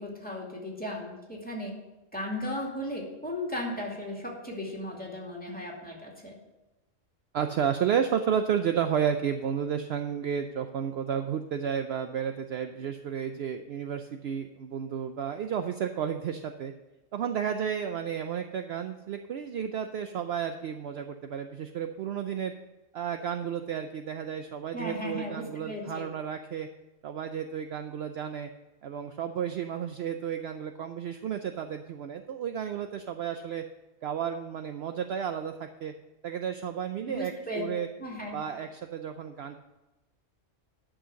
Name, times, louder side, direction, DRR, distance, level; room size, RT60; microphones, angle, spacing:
voice 1, 0.0-1.7 2.1-6.3 24.7-26.1 37.1-37.6 38.0-38.6, left 1 dB, 5° left, -2 dB, 2.3 m, -36 dB
voice 2, 7.3-16.7 17.1-22.5 22.9-26.7 27.0-28.5 28.8-33.6 34.0-35.9 36.2-37.9 38.3-39.6, right 8 dB, 65° right, 7 dB, 0.7 m, -32 dB
11.0 x 6.4 x 6.2 m, 1.0 s
omnidirectional pair, 1.3 m